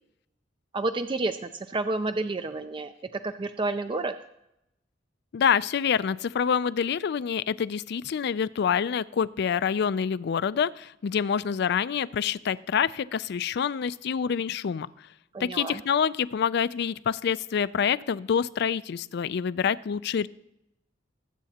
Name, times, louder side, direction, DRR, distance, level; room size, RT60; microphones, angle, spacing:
voice 1, 0.7-2.9 3.2-4.1 15.3-15.8, right 2 dB, 25° right, 9 dB, 0.4 m, -30 dB
voice 2, 5.3-14.9 15.4-20.3, left 7 dB, 60° left, 18 dB, 0.4 m, -26 dB
20.0 x 8.2 x 2.8 m, 0.85 s
head